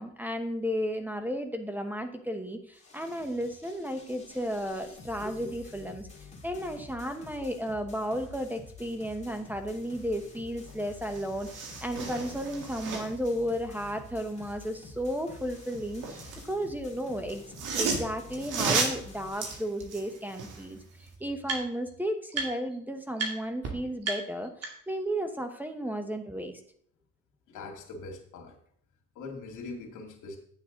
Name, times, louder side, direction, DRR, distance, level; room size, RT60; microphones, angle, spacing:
voice 1, 0.0-17.4 17.7-20.8 21.2-24.5 24.9-26.6, equal, 5° right, 6 dB, 1.0 m, -33 dB
sound 1, 2.7-19.3, left 3 dB, 20° left, 2.2 m, -49 dB
voice 2, 5.2-5.5 6.5-6.7 27.5-28.6 29.2-30.4, left 2 dB, 80° left, 2 dB, 2.1 m, -42 dB
sound 2, 10.7-10.8 11.0-13.3 15.4-16.5 17.3-20.7 21.1-21.2, right 4 dB, 90° right, 1.9 m, -33 dB
sound 3, 18.0-18.1 18.7-18.8 20.1-20.2 20.4-21.9 22.3-22.8 23.1-23.3 23.6-23.7 24.0-25.0, right 4 dB, 55° right, 2.4 m, -36 dB
9.5 x 7.1 x 3.8 m, 0.63 s
cardioid pair, 90°, 30 cm